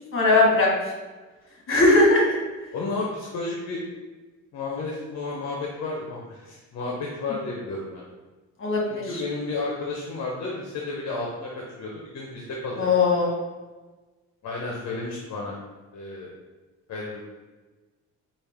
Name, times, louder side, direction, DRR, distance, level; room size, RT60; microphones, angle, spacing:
voice 1, 0.1-0.7 1.7-2.2 8.6-9.0 12.8-13.3, left 2 dB, 45° left, -2 dB, 1.5 m, -19 dB
voice 2, 2.7-3.8 4.5-8.0 8.9-13.2 14.4-15.6 15.9-16.3 16.9-17.2, left 3 dB, 65° left, -3 dB, 0.8 m, -32 dB
4.7 x 2.5 x 3.6 m, 1.2 s
cardioid pair, 90°, 30 cm